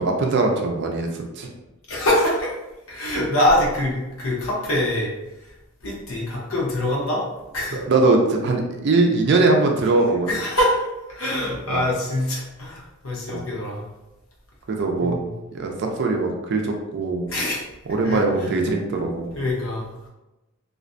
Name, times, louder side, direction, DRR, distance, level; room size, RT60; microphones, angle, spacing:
voice 1, 0.0-1.5 7.7-10.3 11.7-11.8 13.3-13.4 14.7-15.2 15.5-17.3 17.9-19.3, right 3 dB, 55° right, 2 dB, 0.4 m, -21 dB
voice 2, 1.9-2.6 2.9-5.1 5.8-7.2 7.5-7.8 10.3-10.8 11.1-13.8 15.0-15.3 17.3-17.6 18.0-18.2 19.3-19.8, left 1 dB, 75° left, -4 dB, 0.7 m, -24 dB
2.4 x 2.1 x 2.5 m, 1.0 s
head